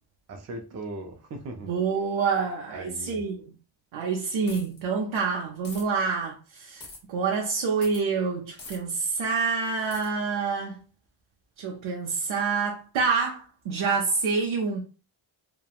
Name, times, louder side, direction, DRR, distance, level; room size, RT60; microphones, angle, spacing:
voice 1, 0.3-1.8 2.7-3.2, right 2 dB, 35° right, 0.4 m, -38 dB
voice 2, 1.7-3.4 3.9-6.8 7.1-10.7 11.6-14.8, right 5 dB, 75° right, 0.7 m, -27 dB
sound 1, 4.5-4.8 5.6-5.8 6.8-7.0 7.8-8.0 8.6-8.8 9.9-10.1, left 3 dB, 40° left, 1.0 m, -42 dB
2.9 x 2.1 x 2.3 m
wide cardioid pair, 165°, 48 cm